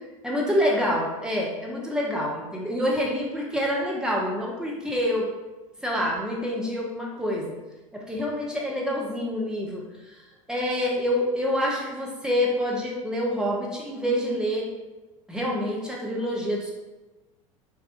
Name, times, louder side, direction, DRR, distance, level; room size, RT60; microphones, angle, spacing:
voice 1, 0.2-5.3 5.8-7.6 7.9-10.2 10.5-14.7 15.3-16.7, equal, 5° right, -3 dB, 0.8 m, -27 dB
2.6 x 2.3 x 3.6 m, 1.1 s
hypercardioid pair, 80°, 18 cm